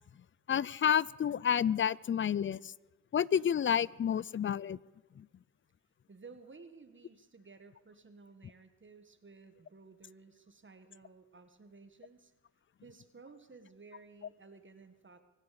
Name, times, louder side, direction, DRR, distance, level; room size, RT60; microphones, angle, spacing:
voice 1, 0.5-2.7 3.1-4.8 5.2-5.3, left 8 dB, 35° left, 24 dB, 0.4 m, -30 dB
voice 2, 6.1-12.3 12.8-15.2, right 4 dB, 35° right, 9 dB, 1.4 m, -55 dB
24.5 x 8.2 x 6.8 m, 1.1 s
cardioid pair, 60°, 34 cm